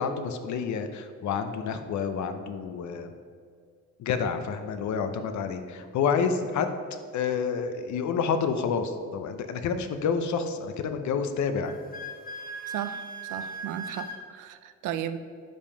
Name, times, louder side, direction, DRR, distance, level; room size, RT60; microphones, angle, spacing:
voice 1, 0.0-3.1 4.0-6.7 7.1-11.8, left 6 dB, 70° left, 8 dB, 0.7 m, -29 dB
Wind instrument woodwind instrument, 11.6-14.2, right 2 dB, 30° left, 1.0 m, -38 dB
voice 2, 12.7-15.2, right 10 dB, 85° right, 11 dB, 0.5 m, -35 dB
5.3 x 5.2 x 5.6 m, 2.1 s
cardioid pair, 90°, 30 cm